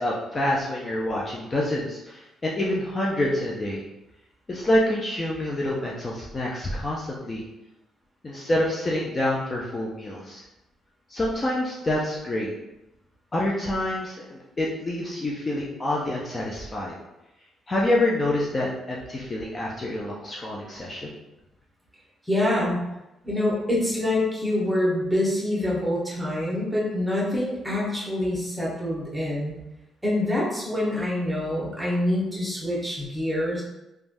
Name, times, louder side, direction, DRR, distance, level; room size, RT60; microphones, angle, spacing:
voice 1, 0.0-3.8 4.5-7.4 8.2-10.4 11.1-12.5 13.3-16.9 17.7-21.1, left 1 dB, 30° left, -4 dB, 0.5 m, -27 dB
voice 2, 22.3-22.8 23.2-29.5 30.0-33.6, left 1 dB, 5° right, -5 dB, 1.2 m, -25 dB
3.2 x 2.3 x 2.6 m, 0.93 s
cardioid pair, 90°, 0 cm